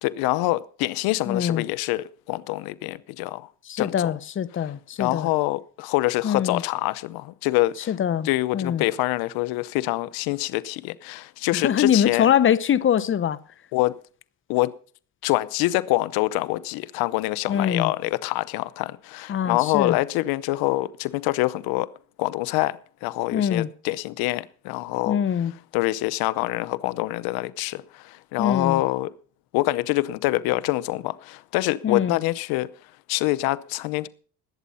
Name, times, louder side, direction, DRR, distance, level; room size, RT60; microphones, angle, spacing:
voice 1, 0.0-3.5 3.8-4.1 5.0-7.9 8.2-12.3 13.7-13.9 14.5-14.8 15.2-21.9 22.2-25.2 25.7-29.1 29.5-32.7 33.1-34.1, left 18 dB, 90° left, 0.8 m, -25 dB
voice 2, 1.3-1.6 3.7-5.3 6.2-6.6 7.9-8.3 8.5-8.8 11.5-13.4 17.5-17.9 19.3-20.0 23.3-23.7 25.1-25.5 28.4-28.8 31.8-32.2, left 9 dB, 35° left, 0.8 m, -23 dB
20.0 x 8.4 x 5.5 m
cardioid pair, 105°, 35 cm